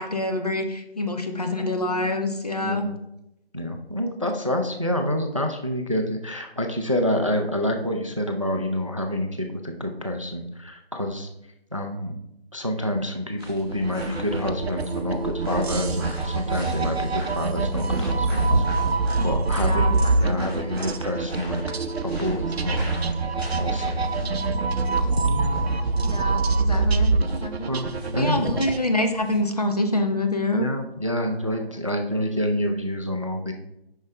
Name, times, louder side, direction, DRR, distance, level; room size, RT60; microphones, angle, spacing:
voice 1, 0.0-2.9 19.6-20.4 26.0-27.1 27.4-27.7 28.2-30.7, left 2 dB, 40° left, 5 dB, 0.7 m, -26 dB
voice 2, 2.6-3.0 3.5-11.3 11.7-12.2 12.5-18.6 19.2-21.6 22.0-22.9 23.5-24.0 25.3-25.7 27.7-28.6 30.6-33.5, left 1 dB, 30° right, 5 dB, 0.5 m, -27 dB
sound 1, 13.4-29.4, equal, 5° right, 1.6 m, -37 dB
sound 2, 13.7-28.8, right 3 dB, 75° right, 0.6 m, -25 dB
7.0 x 5.5 x 3.2 m, 0.83 s
figure-of-eight pair, 165°, 32 cm